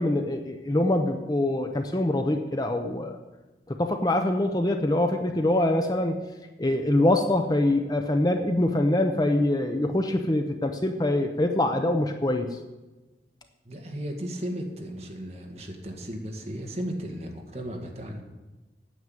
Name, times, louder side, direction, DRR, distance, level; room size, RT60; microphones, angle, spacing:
voice 1, 0.0-3.1 3.7-6.2 6.6-12.5, left 1 dB, 20° left, 6 dB, 0.7 m, -24 dB
voice 2, 13.6-18.2, equal, 35° right, 2 dB, 1.8 m, -35 dB
9.3 x 7.8 x 9.1 m, 1.1 s
head